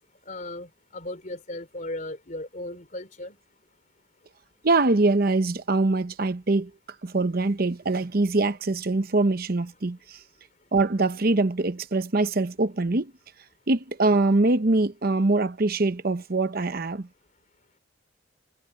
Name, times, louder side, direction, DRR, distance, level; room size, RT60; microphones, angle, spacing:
voice 1, 0.3-3.4, left 1 dB, 40° left, 4.4 m, -36 dB
voice 2, 4.6-6.7 7.0-10.2 10.7-13.1 13.7-17.1, right 2 dB, 50° right, 0.9 m, -23 dB
head